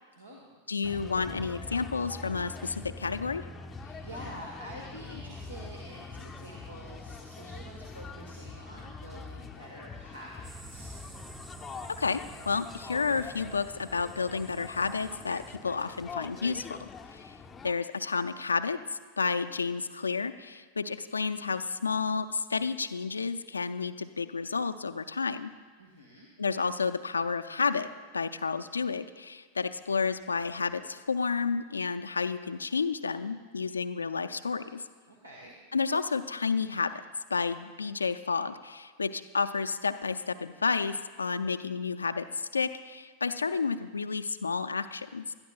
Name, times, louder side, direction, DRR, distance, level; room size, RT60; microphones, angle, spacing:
voice 1, 0.1-0.5 3.8-11.0 25.8-26.3 35.1-35.5, right 1 dB, 80° right, -1 dB, 1.4 m, -47 dB
voice 2, 0.7-3.4 12.0-17.4 17.6-18.8 19.2-25.5 26.4-34.8 35.7-36.9 37.3-45.3, left 5 dB, 75° left, 11 dB, 0.4 m, -31 dB
sound 1, 0.8-17.7, left 4 dB, 20° left, 0.6 m, -44 dB
sound 2, 10.4-15.6, right 2 dB, 20° right, 1.6 m, -49 dB
19.0 x 12.5 x 2.4 m, 1.5 s
figure-of-eight pair, 90°, 0 cm